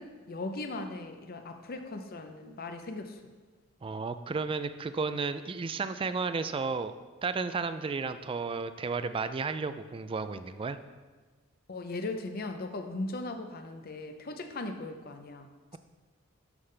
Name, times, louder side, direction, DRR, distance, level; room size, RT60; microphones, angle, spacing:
voice 1, 0.0-3.2 11.7-15.8, left 2 dB, 45° left, 7 dB, 0.7 m, -38 dB
voice 2, 3.8-6.9 7.2-10.8, right 4 dB, 25° right, 11 dB, 0.3 m, -33 dB
12.0 x 5.6 x 3.3 m, 1.3 s
head